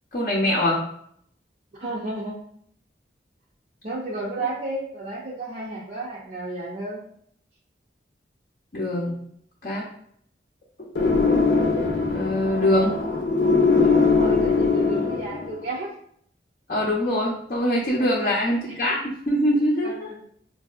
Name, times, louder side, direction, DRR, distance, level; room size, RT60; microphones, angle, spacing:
voice 1, 0.1-0.8 8.7-9.2 9.6-9.9 10.8-10.9 12.1-12.9 16.7-20.1, left 1 dB, 50° left, -4 dB, 0.6 m, -23 dB
voice 2, 1.7-2.4 3.8-7.0 13.8-15.9 18.0-18.3 18.7-18.8 19.8-20.2, right 2 dB, 45° right, -5 dB, 0.5 m, -32 dB
sound 1, 10.9-15.6, left 4 dB, 85° left, 0.7 m, -21 dB
4.5 x 2.6 x 2.4 m, 0.65 s
head